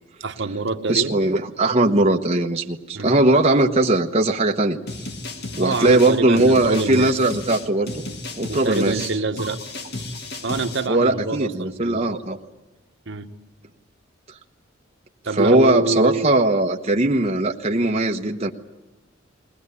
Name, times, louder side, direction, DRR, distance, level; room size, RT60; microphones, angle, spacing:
voice 1, 0.2-1.2 2.9-3.2 5.6-7.2 8.5-9.6 10.4-12.2 13.1-13.3 15.2-16.3, right 3 dB, 65° right, 7 dB, 1.3 m, -26 dB
voice 2, 0.9-4.8 5.6-8.0 8.4-9.1 10.9-12.4 15.4-18.5, right 2 dB, 35° right, 2 dB, 1.0 m, -19 dB
sound 1, 4.9-10.9, left 2 dB, 55° left, 1.8 m, -33 dB
21.5 x 19.0 x 9.7 m, 1.1 s
head